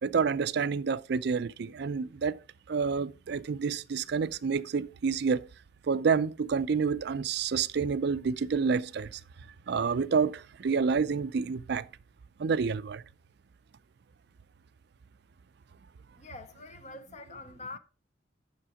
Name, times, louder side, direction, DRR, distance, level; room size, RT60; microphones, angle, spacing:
voice 1, 0.0-2.4 2.7-5.4 5.9-9.2 9.7-11.9 12.4-13.0, right 5 dB, 60° right, 0.4 m, -28 dB
voice 2, 16.2-17.8, left 3 dB, 40° left, 0.7 m, -45 dB
7.5 x 5.9 x 4.8 m
head